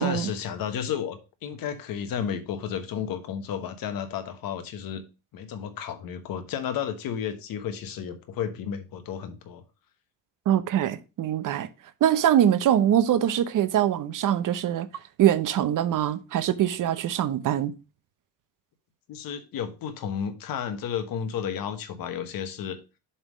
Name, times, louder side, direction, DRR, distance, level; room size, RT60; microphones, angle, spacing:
voice 1, 0.0-5.0 5.3-9.6 19.1-22.8, left 8 dB, 75° left, 1.2 m, -32 dB
voice 2, 10.5-11.7 12.0-14.9 15.2-17.7, right 10 dB, 60° right, 0.8 m, -23 dB
7.1 x 3.5 x 6.1 m
cardioid pair, 95°, 35 cm